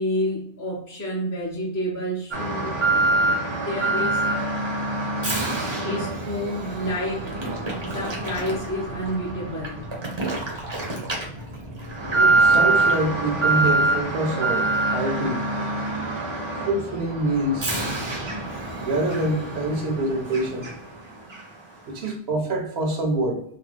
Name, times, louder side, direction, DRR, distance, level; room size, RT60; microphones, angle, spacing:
voice 1, 0.0-2.8 3.3-4.4 5.8-7.3 7.8-10.3 15.9-16.2, equal, 25° left, -5 dB, 0.5 m, -30 dB
Alarm, 2.3-21.0 21.3-21.4 22.0-22.1, right 2 dB, 30° right, 0.6 m, -25 dB
voice 2, 12.1-15.8 16.6-17.7 18.8-20.7 21.9-23.4, right 2 dB, 70° right, 2 dB, 1.0 m, -26 dB
2.8 x 2.1 x 3.2 m, 0.64 s
omnidirectional pair, 1.1 m